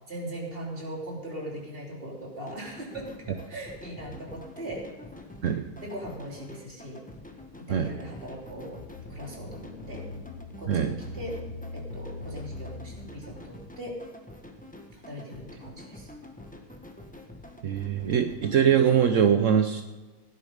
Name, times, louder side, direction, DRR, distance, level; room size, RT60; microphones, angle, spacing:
voice 1, 0.1-4.9 5.4-5.5 5.8-7.1 7.6-8.8 9.1-10.1 10.6-14.1 14.9-16.1, right 1 dB, 25° right, -1 dB, 3.2 m, -39 dB
sound 1, 2.5-19.1, left 1 dB, 5° left, 0.9 m, -47 dB
sound 2, 8.3-13.4, left 3 dB, 75° left, 3.4 m, -42 dB
voice 2, 17.6-19.8, right 8 dB, 70° right, 7 dB, 0.7 m, -22 dB
16.5 x 10.5 x 5.2 m, 1.2 s
omnidirectional pair, 2.2 m